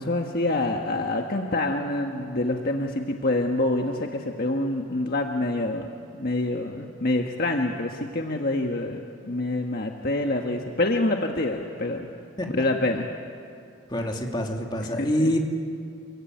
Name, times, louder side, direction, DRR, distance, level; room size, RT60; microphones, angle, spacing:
voice 1, 0.0-5.9 6.1-12.1 12.5-13.1 14.8-15.3, left 2 dB, 50° left, 2 dB, 1.5 m, -26 dB
voice 2, 13.9-15.4, equal, 20° left, 1 dB, 2.7 m, -26 dB
27.5 x 23.0 x 9.4 m, 2.4 s
head